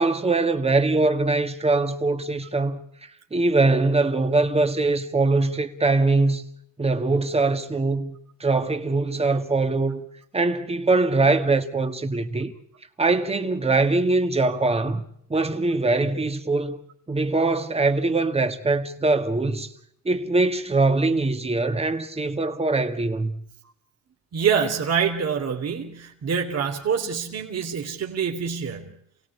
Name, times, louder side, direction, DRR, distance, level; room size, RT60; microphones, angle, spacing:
voice 1, 0.0-6.4 6.8-10.0 10.3-12.5 13.0-15.1 15.3-16.8 17.1-19.7 20.1-23.4, right 3 dB, 20° right, 2.1 m, -22 dB
voice 2, 24.3-28.9, right 6 dB, 55° right, 3.2 m, -26 dB
28.5 x 17.0 x 8.5 m
cardioid pair, 90°, 30 cm